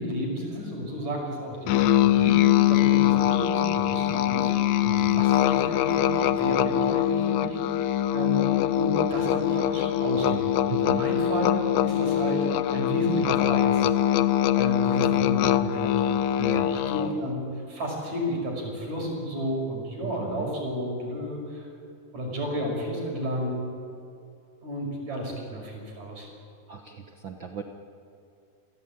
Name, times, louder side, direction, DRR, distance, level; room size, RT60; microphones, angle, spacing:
voice 1, 0.0-4.5 4.9-11.6 11.8-14.2 14.5-16.3 16.7-21.7 22.1-23.7 24.6-26.3, equal, 50° right, 0 dB, 6.8 m, -32 dB
Musical instrument, 1.7-17.2, left 11 dB, 75° left, 1.8 m, -23 dB
voice 2, 4.8-5.3 10.7-11.1 16.4-16.7 20.0-20.5 26.7-27.6, right 6 dB, 75° right, 4 dB, 1.1 m, -36 dB
29.0 x 17.5 x 8.9 m, 2.6 s
omnidirectional pair, 4.1 m